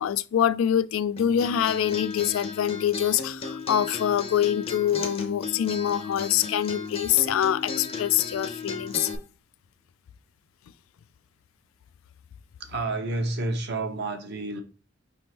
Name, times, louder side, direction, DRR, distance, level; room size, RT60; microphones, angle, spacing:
voice 1, 0.0-9.1, left 10 dB, 85° left, 0.3 m, -25 dB
Acoustic guitar, 1.2-9.2, left 4 dB, 30° left, 0.6 m, -35 dB
voice 2, 12.6-14.6, right 2 dB, 55° right, 0.8 m, -30 dB
5.1 x 3.5 x 2.9 m
head